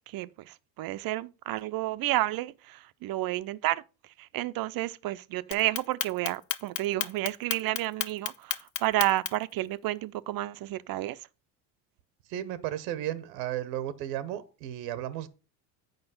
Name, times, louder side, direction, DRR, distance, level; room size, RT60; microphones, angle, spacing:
voice 1, 0.1-3.8 4.2-11.3, right 16 dB, 50° right, 0.6 m, -31 dB
Clock, 5.5-9.5, left 12 dB, 65° left, 0.9 m, -32 dB
voice 2, 12.3-15.3, right 12 dB, 85° right, 0.9 m, -34 dB
8.0 x 5.3 x 5.4 m
supercardioid pair, 85°, 46 cm